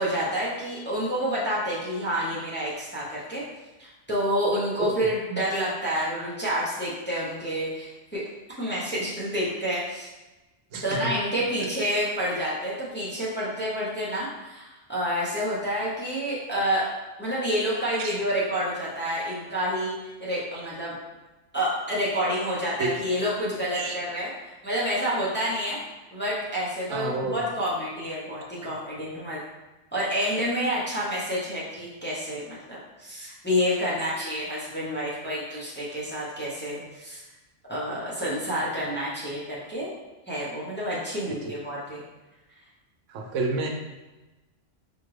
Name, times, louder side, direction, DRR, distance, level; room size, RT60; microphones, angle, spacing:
voice 1, 0.0-3.4 3.8-8.2 8.6-10.1 10.8-16.9 17.2-20.9 21.5-25.8 26.1-29.4 29.9-37.2 37.7-39.9 40.3-42.0, equal, 10° left, -7 dB, 0.7 m, -28 dB
voice 2, 4.8-5.1 10.7-11.1 18.0-18.2 22.8-23.0 23.7-24.0 26.9-27.4 41.4-41.5 43.1-43.7, right 3 dB, 85° right, 2 dB, 1.0 m, -29 dB
4.3 x 2.4 x 3.2 m, 1.1 s
omnidirectional pair, 1.2 m